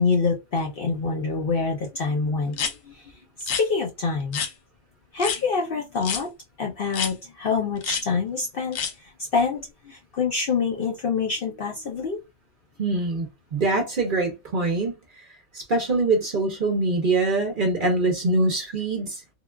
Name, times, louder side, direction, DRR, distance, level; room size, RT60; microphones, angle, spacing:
voice 1, 0.0-2.9 3.4-4.4 5.1-6.3 6.6-8.8 9.3-12.2, left 4 dB, 55° left, 0.6 m, -26 dB
sound 1, 2.5-2.7 3.4-3.6 4.3-4.5 5.2-5.4 6.0-6.2 6.9-7.1 7.8-8.0 8.7-8.9, left 7 dB, 75° left, 1.0 m, -28 dB
voice 2, 12.8-15.2 15.5-19.2, right 2 dB, 50° right, 0.7 m, -24 dB
3.7 x 2.3 x 2.2 m
omnidirectional pair, 1.4 m